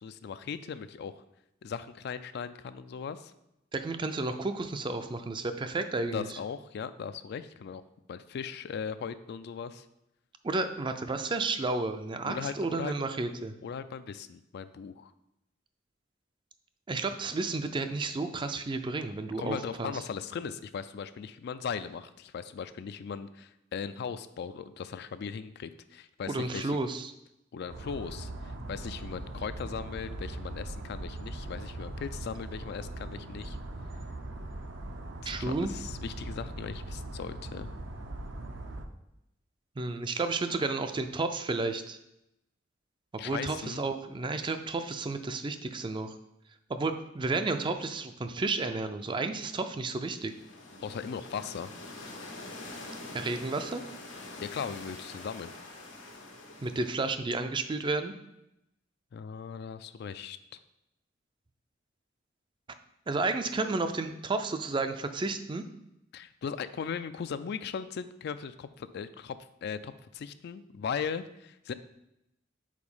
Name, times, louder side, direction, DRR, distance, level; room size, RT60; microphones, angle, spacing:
voice 1, 0.0-1.2 1.6-3.3 6.1-7.8 8.1-9.9 12.2-12.9 13.6-15.1 19.4-26.8 27.5-33.6 35.2-37.7 43.2-43.8 50.8-51.7 54.4-55.5 59.1-60.4 66.1-71.7, left 6 dB, 60° left, 12 dB, 0.3 m, -38 dB
voice 2, 3.7-6.3 10.4-13.6 16.9-20.0 26.3-27.1 35.3-35.7 39.8-42.0 43.1-46.2 46.7-50.3 53.1-53.8 56.6-58.1 63.1-65.6, right 3 dB, 25° right, 9 dB, 0.4 m, -32 dB
sound 1, 27.7-38.9, right 1 dB, 70° right, 0.7 m, -40 dB
sound 2, 50.1-57.2, left 2 dB, 90° left, 1.2 m, -45 dB
5.0 x 4.2 x 5.4 m, 0.85 s
head